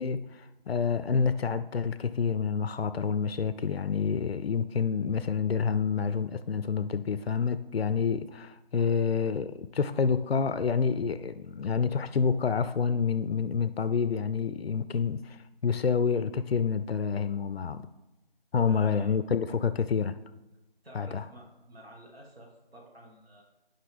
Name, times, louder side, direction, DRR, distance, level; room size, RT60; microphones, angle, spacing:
voice 1, 0.0-15.4 15.6-17.8 18.5-20.2 20.9-21.2, left 6 dB, 85° left, 0.4 m, -28 dB
voice 2, 18.7-19.1 20.8-23.4, equal, 80° right, 1.8 m, -50 dB
10.5 x 5.5 x 3.5 m
figure-of-eight pair, 175°, 30 cm